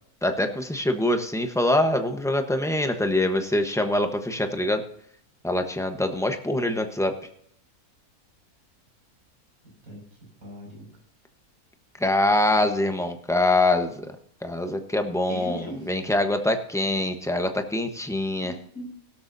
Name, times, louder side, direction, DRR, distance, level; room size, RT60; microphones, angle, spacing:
voice 1, 0.2-4.8 5.4-7.1 12.0-14.1 14.4-18.5, left 1 dB, ahead, 5 dB, 0.8 m, -24 dB
voice 2, 10.4-10.9 15.3-15.9 18.4-18.9, equal, 65° right, -1 dB, 6.7 m, -39 dB
17.0 x 12.5 x 2.7 m, 0.67 s
omnidirectional pair, 1.6 m